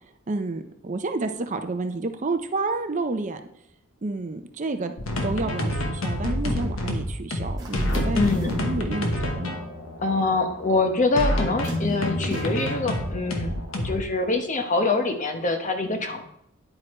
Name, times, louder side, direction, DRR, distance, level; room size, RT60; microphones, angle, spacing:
voice 1, 0.3-3.4 4.0-4.9 5.2-9.6, right 3 dB, 35° right, 7 dB, 0.5 m, -30 dB
sound 1, 5.0-13.9, left 1 dB, 70° left, 1.2 m, -27 dB
sound 2, 7.6-8.6 10.5-10.6 11.6-12.8, right 1 dB, 20° right, 1.6 m, -39 dB
voice 2, 8.1-8.5 10.0-16.2, left 3 dB, 35° left, 6 dB, 0.9 m, -25 dB
9.9 x 4.8 x 4.3 m, 0.76 s
head